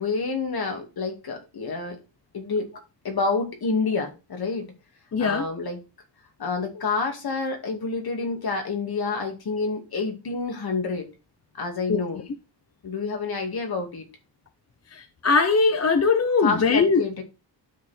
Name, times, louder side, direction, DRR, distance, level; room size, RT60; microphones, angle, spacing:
voice 1, 0.0-2.0 2.3-2.7 3.0-4.7 5.2-5.8 6.4-11.1 11.6-12.2 12.8-14.1 16.4-17.2, left 4 dB, 60° left, 2.3 m, -28 dB
voice 2, 5.1-5.4 11.9-12.0 15.2-17.0, left 4 dB, 35° left, 0.7 m, -20 dB
12.0 x 4.2 x 4.3 m
wide cardioid pair, 140°, 42 cm